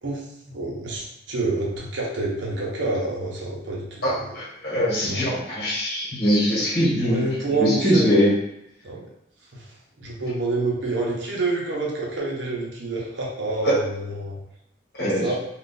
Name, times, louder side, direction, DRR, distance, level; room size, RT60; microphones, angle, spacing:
voice 1, 0.0-4.3 5.0-5.3 7.0-8.1 8.8-9.0 9.5-9.7 10.0-14.4 15.0-15.4, right 2 dB, 80° right, -2 dB, 0.8 m, -28 dB
voice 2, 4.0-7.2 7.6-8.3 13.6-13.8 15.0-15.2, equal, 55° left, -6 dB, 1.3 m, -22 dB
2.6 x 2.4 x 3.8 m, 0.79 s
head